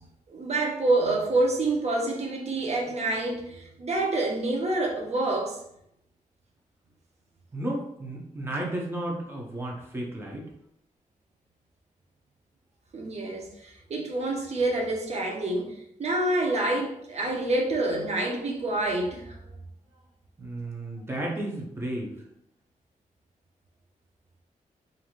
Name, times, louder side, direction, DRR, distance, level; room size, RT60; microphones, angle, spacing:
voice 1, 0.3-5.6 12.9-19.4, right 2 dB, 50° right, 0 dB, 0.6 m, -27 dB
voice 2, 7.5-10.5 20.4-22.1, right 1 dB, 15° right, -2 dB, 0.7 m, -33 dB
3.0 x 2.6 x 2.5 m, 0.76 s
wide cardioid pair, 115°, 14 cm